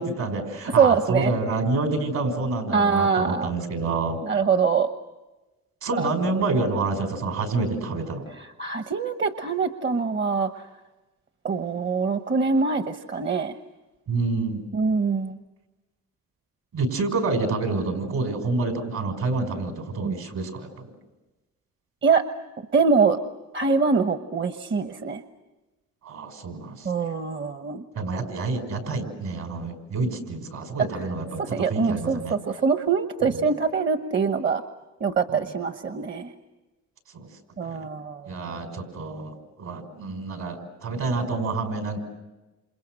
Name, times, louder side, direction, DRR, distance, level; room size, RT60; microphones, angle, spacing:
voice 1, 0.0-4.2 5.8-8.2 14.1-14.6 16.7-20.9 26.0-26.9 27.9-32.4 35.3-35.5 37.1-37.3 37.6-37.9 38.3-42.0, right 3 dB, 70° right, 5 dB, 5.7 m, -28 dB
voice 2, 0.7-1.3 2.7-3.5 4.2-4.9 6.0-6.1 8.4-10.6 11.4-13.5 14.7-15.3 20.0-20.2 22.0-22.2 22.7-23.2 23.5-25.2 26.8-27.8 30.9-31.0 31.4-34.6 35.0-36.3 37.6-38.3, right 5 dB, 40° right, 8 dB, 1.1 m, -24 dB
28.5 x 28.5 x 6.4 m, 1.1 s
cardioid pair, 90°, 30 cm